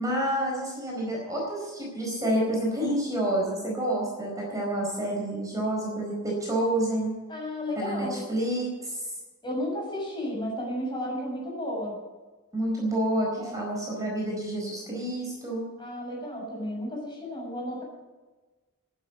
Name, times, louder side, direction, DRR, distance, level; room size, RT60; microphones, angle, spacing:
voice 1, 0.0-7.1 7.8-9.0 12.5-15.7, right 1 dB, 15° right, -3 dB, 4.5 m, -29 dB
voice 2, 7.3-8.3 9.4-12.0 13.4-13.5 15.8-17.8, left 1 dB, 20° left, -2 dB, 6.9 m, -33 dB
15.0 x 10.0 x 8.3 m, 1.2 s
head